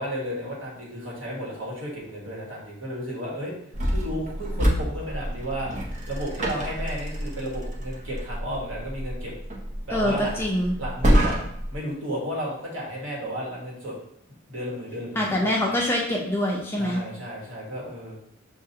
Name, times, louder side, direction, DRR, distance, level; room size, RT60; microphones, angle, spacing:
voice 1, 0.0-3.5 3.9-9.3 9.8-10.3 10.8-11.4 11.7-14.0 14.5-15.8 16.8-18.2, equal, 75° right, -4 dB, 1.5 m, -33 dB
sound 1, 3.7-11.8, equal, 35° right, 0.6 m, -27 dB
voice 2, 9.9-10.7 15.2-17.0, left 1 dB, 10° left, -2 dB, 0.5 m, -25 dB
6.3 x 2.4 x 2.7 m, 0.70 s
head